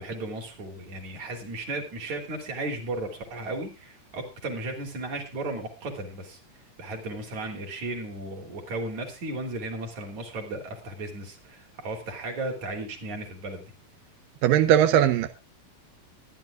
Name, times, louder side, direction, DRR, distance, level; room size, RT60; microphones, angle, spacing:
voice 1, 0.0-6.4 6.8-13.7, right 2 dB, 55° right, 4.5 m, -35 dB
voice 2, 14.4-15.3, right 11 dB, 85° right, 2.5 m, -19 dB
23.0 x 10.5 x 2.5 m
omnidirectional pair, 3.9 m